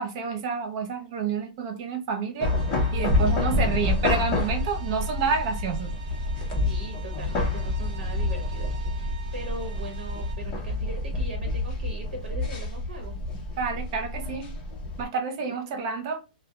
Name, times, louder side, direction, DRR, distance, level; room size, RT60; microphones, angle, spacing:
voice 1, 0.0-2.5 2.9-6.0 13.6-14.5 15.0-16.2, right 5 dB, 35° right, 0.5 m, -29 dB
sound 1, 2.4-15.0, left 2 dB, 20° left, 0.5 m, -28 dB
sound 2, 2.4-10.3, right 9 dB, 50° right, 0.9 m, -46 dB
voice 2, 6.6-13.1 15.5-15.9, right 2 dB, 80° right, 0.9 m, -40 dB
2.3 x 2.0 x 2.7 m
hypercardioid pair, 170°, 5 cm